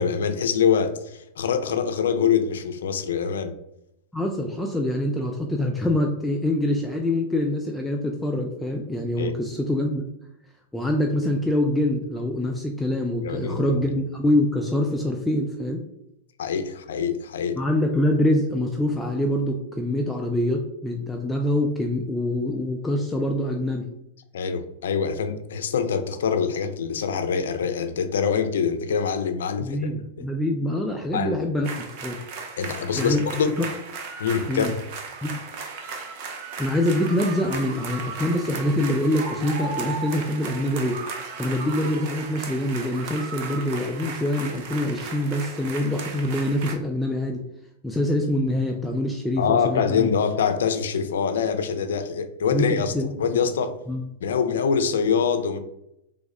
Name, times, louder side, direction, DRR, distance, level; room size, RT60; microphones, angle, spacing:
voice 1, 0.0-3.5 9.2-9.4 13.2-13.8 16.4-17.6 24.3-29.8 31.1-31.4 32.6-33.6 34.2-34.7 49.4-52.9 53.2-53.8 54.2-55.6, left 6 dB, 85° left, 9 dB, 0.4 m, -24 dB
voice 2, 4.1-10.1 10.7-15.8 17.6-23.9 29.6-32.2 33.0-33.2 33.6-33.7 34.5-34.7 35.2-35.4 36.6-41.0 41.4-47.4 47.8-50.1 52.5-53.1 53.9-54.0, left 1 dB, 5° left, 1 dB, 0.3 m, -25 dB
sound 1, 31.6-46.7, right 4 dB, 50° right, 0.7 m, -36 dB
3.4 x 2.0 x 3.7 m, 0.80 s
hypercardioid pair, 140°, 0 cm